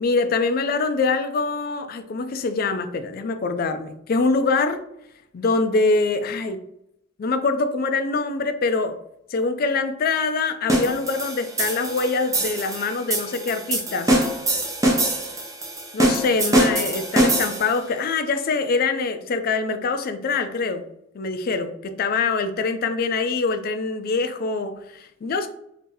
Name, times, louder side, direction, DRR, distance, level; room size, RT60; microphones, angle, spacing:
voice 1, 0.0-4.8 5.3-6.6 7.2-9.0 9.3-14.1 15.9-20.8 21.1-25.5, left 4 dB, 50° left, 9 dB, 0.4 m, -24 dB
sound 1, 10.7-17.8, right 1 dB, 15° right, 0.6 m, -23 dB
2.8 x 2.6 x 3.7 m, 0.77 s
head